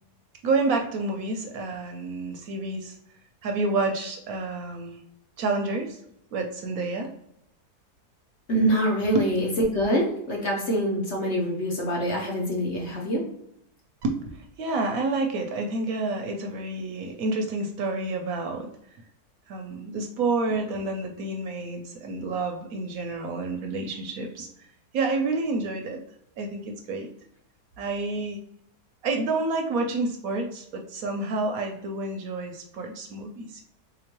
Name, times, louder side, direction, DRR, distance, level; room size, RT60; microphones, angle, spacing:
voice 1, 0.4-3.0 3.4-5.0 5.4-6.0 6.3-7.1 14.0-18.7 19.5-24.5 24.9-26.0 26.4-27.1 27.8-28.4 29.0-33.6, right 3 dB, 70° right, 3 dB, 0.9 m, -29 dB
voice 2, 8.5-13.2, equal, 55° left, -1 dB, 0.9 m, -25 dB
3.8 x 2.9 x 2.9 m, 0.75 s
omnidirectional pair, 1.7 m